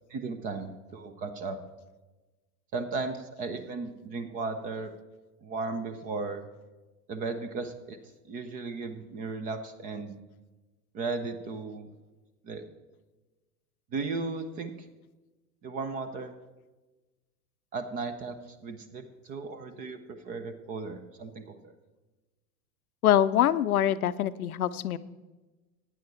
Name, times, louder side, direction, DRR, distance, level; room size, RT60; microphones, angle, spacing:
voice 1, 0.1-1.6 2.7-4.9 5.4-6.5 7.1-8.0 8.3-10.2 10.9-11.9 12.4-12.6 13.9-14.9 15.6-16.3 17.7-21.7, right 3 dB, 15° right, 10 dB, 0.5 m, -36 dB
voice 2, 23.0-25.0, left 11 dB, 60° left, 15 dB, 0.6 m, -24 dB
15.0 x 9.6 x 4.2 m, 1.2 s
figure-of-eight pair, 90°, 49 cm